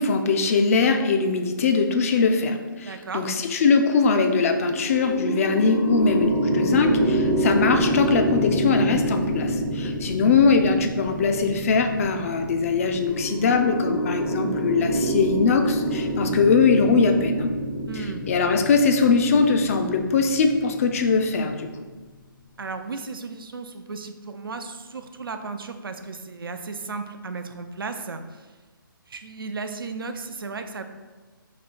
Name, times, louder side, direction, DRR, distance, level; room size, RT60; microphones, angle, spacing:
voice 1, 0.0-17.5 17.9-21.7, left 4 dB, 40° left, 6 dB, 0.3 m, -21 dB
voice 2, 2.9-3.3 17.9-18.2 22.6-28.4 29.1-30.8, right 4 dB, 80° right, 7 dB, 0.4 m, -35 dB
sound 1, 4.4-21.6, right 1 dB, 70° left, 1.4 m, -27 dB
3.1 x 2.7 x 4.0 m, 1.3 s
figure-of-eight pair, 140°, 12 cm